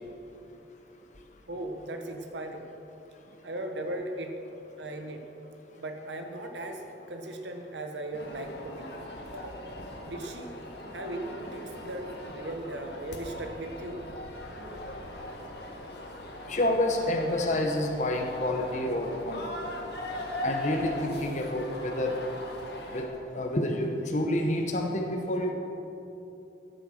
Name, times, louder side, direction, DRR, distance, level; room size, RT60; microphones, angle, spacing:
voice 1, 1.5-2.7 3.4-4.3 4.8-5.2 5.8-6.8 7.1-8.9 9.3-9.7 10.0-10.5 10.9-14.0, right 1 dB, 85° right, 4 dB, 1.0 m, -37 dB
sound 1, 8.1-23.1, left 1 dB, 65° left, 1.6 m, -40 dB
voice 2, 16.5-19.4 20.4-22.2 22.9-23.1 23.3-25.5, left 1 dB, 45° left, 2 dB, 1.0 m, -28 dB
13.5 x 8.0 x 6.4 m, 2.9 s
head